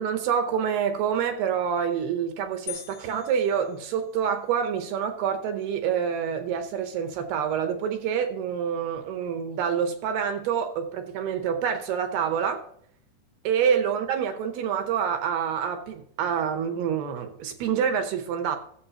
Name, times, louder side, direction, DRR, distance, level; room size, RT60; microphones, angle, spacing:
voice 1, 0.0-12.6 13.4-18.6, right 7 dB, 75° right, 7 dB, 2.5 m, -27 dB
sound 1, 2.7-4.5, left 15 dB, 85° left, 2.9 m, -42 dB
14.0 x 7.6 x 2.8 m, 0.64 s
omnidirectional pair, 5.2 m